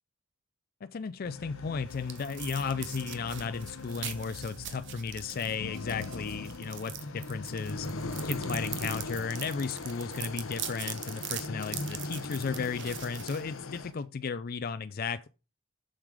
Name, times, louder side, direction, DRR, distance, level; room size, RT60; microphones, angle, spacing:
voice 1, 0.8-7.9 8.2-15.3, left 5 dB, 45° left, 0.4 m, -34 dB
sound 1, 1.2-13.9, left 3 dB, 70° left, 0.8 m, -40 dB
sound 2, 1.4-14.0, right 10 dB, 55° right, 1.1 m, -43 dB
7.1 x 6.7 x 4.8 m
head